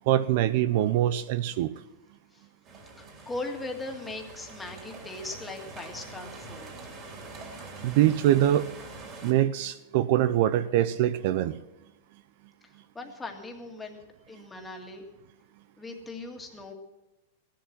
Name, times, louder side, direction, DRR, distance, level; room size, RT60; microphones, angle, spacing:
voice 1, 0.1-1.7 7.8-8.7 9.2-11.6, right 12 dB, 55° right, 14 dB, 0.6 m, -24 dB
sound 1, 2.6-9.3, right 3 dB, 30° right, 3.1 m, -44 dB
voice 2, 3.0-6.8 12.9-14.0 14.3-15.1 15.8-16.7, left 2 dB, 10° left, 2 dB, 2.0 m, -39 dB
15.5 x 11.5 x 6.2 m, 1.0 s
supercardioid pair, 150°, 0 cm